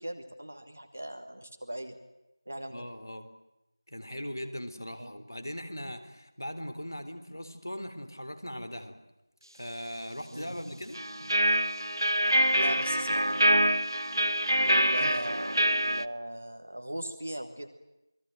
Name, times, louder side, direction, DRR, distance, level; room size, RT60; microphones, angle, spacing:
voice 1, 0.0-1.9 2.5-2.8 5.0-5.1 10.3-10.5 12.5-13.5 14.6-17.7, right 1 dB, 20° right, 7 dB, 1.3 m, -39 dB
voice 2, 2.7-3.3 3.9-9.0 9.5-11.0 15.0-15.1, equal, 55° left, 9 dB, 3.9 m, -39 dB
sound 1, 11.0-16.1, right 1 dB, 75° right, 1.2 m, -25 dB
29.0 x 21.0 x 9.1 m, 0.93 s
figure-of-eight pair, 180°, 2 cm